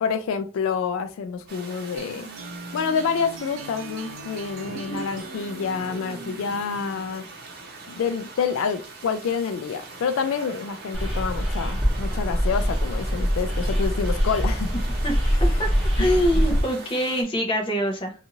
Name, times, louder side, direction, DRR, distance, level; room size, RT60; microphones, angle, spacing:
voice 1, 0.0-2.3 2.7-7.2 7.9-14.7 15.3-15.5 16.0-16.2, left 6 dB, 80° left, 0.3 m, -28 dB
sound 1, 1.5-17.2, right 3 dB, 50° right, 0.8 m, -42 dB
sound 2, 2.0-7.1, right 2 dB, 75° right, 0.5 m, -41 dB
voice 2, 4.7-5.1 15.0-15.2 15.6-15.7 16.0-18.1, equal, 25° left, 0.6 m, -24 dB
sound 3, 10.9-16.6, equal, 5° right, 1.0 m, -23 dB
2.6 x 2.4 x 2.9 m
head